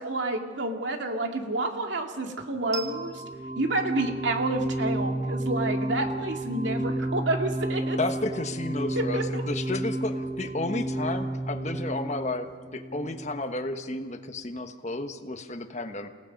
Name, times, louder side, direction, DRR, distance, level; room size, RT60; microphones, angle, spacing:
voice 1, 0.0-3.2 3.6-8.0 8.9-9.4, right 2 dB, 80° right, 3 dB, 2.3 m, -29 dB
sound 1, 2.7-13.7, right 1 dB, 35° right, 2.2 m, -32 dB
voice 2, 8.0-16.1, left 2 dB, 40° left, 7 dB, 1.3 m, -32 dB
29.0 x 18.0 x 5.4 m, 1.5 s
head